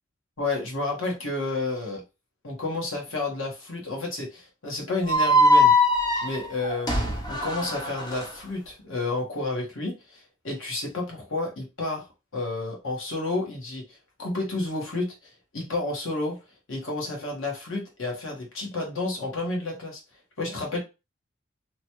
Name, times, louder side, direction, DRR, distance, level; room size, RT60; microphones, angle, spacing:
voice 1, 0.4-2.0 2.4-5.7 6.2-12.1 12.3-16.4 16.7-20.0 20.4-20.8, left 2 dB, 80° left, 0 dB, 1.2 m, -31 dB
sound 1, 5.1-8.3, left 1 dB, 20° left, 0.5 m, -21 dB
3.0 x 2.2 x 2.9 m, 0.28 s
head